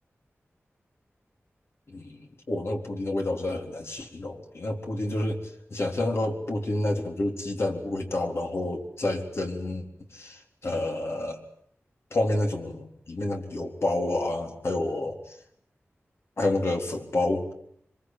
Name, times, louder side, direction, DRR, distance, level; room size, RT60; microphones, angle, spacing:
voice 1, 1.9-5.4 5.7-9.9 10.1-11.4 12.1-15.2 16.4-17.4, left 2 dB, 65° left, 3 dB, 3.9 m, -29 dB
25.0 x 23.0 x 9.3 m, 0.68 s
wide cardioid pair, 100°, 5 cm